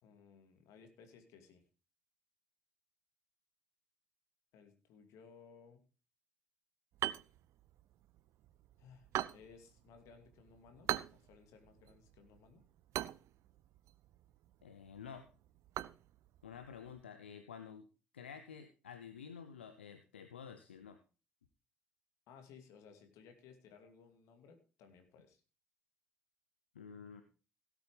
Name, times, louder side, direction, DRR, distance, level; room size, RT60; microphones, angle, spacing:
voice 1, 0.0-1.6 4.5-5.8 8.8-12.6 22.3-25.4, left 6 dB, 65° left, 6 dB, 2.5 m, -60 dB
sound 1, 6.9-17.0, right 13 dB, 60° right, 0.5 m, -44 dB
voice 2, 14.6-15.3 16.4-17.9 18.1-21.0 26.7-27.2, left 7 dB, 85° left, 10 dB, 0.7 m, -50 dB
17.0 x 8.4 x 3.4 m, 0.33 s
figure-of-eight pair, 50°, 6 cm